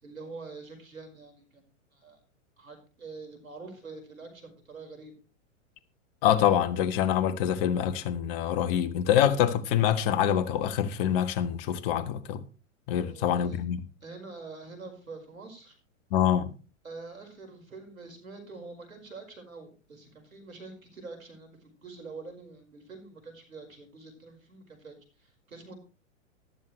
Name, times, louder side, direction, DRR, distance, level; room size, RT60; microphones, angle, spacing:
voice 1, 0.0-1.7 1.9-2.2 2.6-5.2 13.0-13.6 14.0-15.8 16.8-25.8, right 3 dB, 90° right, 5.1 m, -45 dB
voice 2, 6.2-12.4 12.9-13.8 16.1-16.5, left 10 dB, 45° left, 1.5 m, -25 dB
14.5 x 12.5 x 3.2 m
hypercardioid pair, 110°, 40 cm